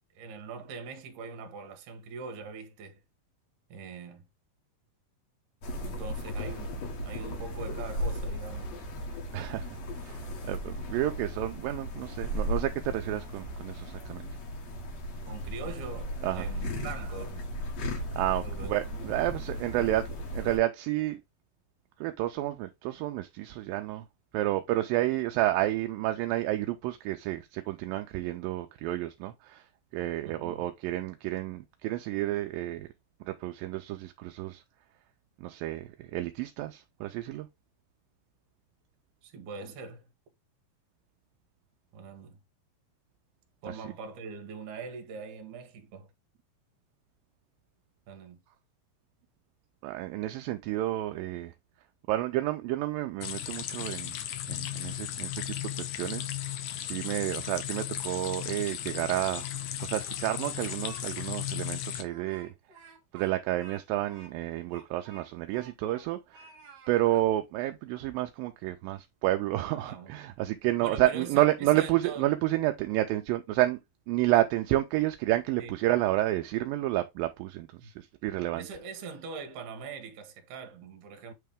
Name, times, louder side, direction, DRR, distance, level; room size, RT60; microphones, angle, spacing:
voice 1, 0.1-3.0 3.7-4.3 5.8-8.7 15.2-17.5 18.4-19.2 19.8-19.9 30.2-30.7 39.2-40.1 41.9-42.4 43.6-46.1 48.1-48.4 69.7-70.1 70.8-72.3 74.4-74.5 75.6-75.7 77.8-77.9 78.5-81.3, right 5 dB, 65° right, 2.5 m, -42 dB
sound 1, 5.6-20.6, equal, 55° left, 2.4 m, -36 dB
voice 2, 9.3-9.8 10.0-14.3 16.2-16.5 18.2-20.0 20.3-21.2 22.0-24.1 24.3-29.7 29.9-32.9 33.3-34.6 35.4-37.5 43.7-43.8 49.8-51.5 52.1-54.2 54.5-59.5 59.8-62.5 63.1-66.5 66.9-73.8 74.1-78.7, right 15 dB, 80° right, 2.2 m, -30 dB
sound 2, 53.2-62.0, left 11 dB, 70° left, 1.9 m, -36 dB
Speech, 58.8-59.7 60.0-61.0 61.4-61.5 62.0-66.1 66.3-67.3, right 3 dB, 50° right, 2.7 m, -53 dB
8.3 x 3.3 x 3.5 m
omnidirectional pair, 4.1 m